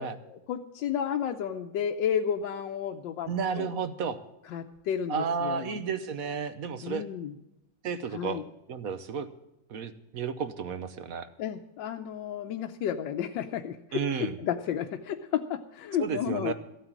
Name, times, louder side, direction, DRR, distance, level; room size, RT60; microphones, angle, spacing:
voice 1, 0.0-3.3 3.6-3.7 4.5-5.8 6.8-7.3 8.1-8.4 11.4-16.5, left 9 dB, 80° left, 4 dB, 1.4 m, -32 dB
voice 2, 3.3-4.2 5.1-7.0 7.8-8.4 8.7-9.3 9.7-11.3 13.9-14.4 16.0-16.5, right 6 dB, 55° right, 11 dB, 1.2 m, -32 dB
14.5 x 8.9 x 7.3 m, 0.88 s
omnidirectional pair, 2.0 m